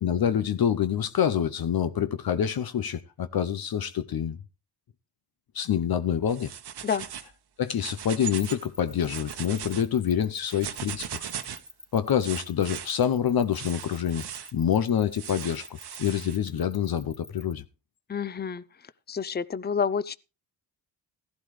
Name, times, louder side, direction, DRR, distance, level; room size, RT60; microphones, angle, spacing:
voice 1, 0.0-4.4 5.5-6.5 7.6-11.3 11.9-14.2 14.5-15.7 16.0-17.6, left 9 dB, 55° left, 0.8 m, -26 dB
sound 1, 6.3-7.3 7.7-8.6 9.0-9.8 10.5-11.7 12.2-12.9 13.5-14.5 15.2-16.4, right 9 dB, 60° right, 1.1 m, -38 dB
sound 2, 8.4-17.5, equal, 5° left, 2.2 m, -47 dB
voice 2, 18.1-18.6 19.1-20.2, left 6 dB, 25° left, 0.6 m, -28 dB
15.5 x 11.5 x 3.2 m
cardioid pair, 65°, 44 cm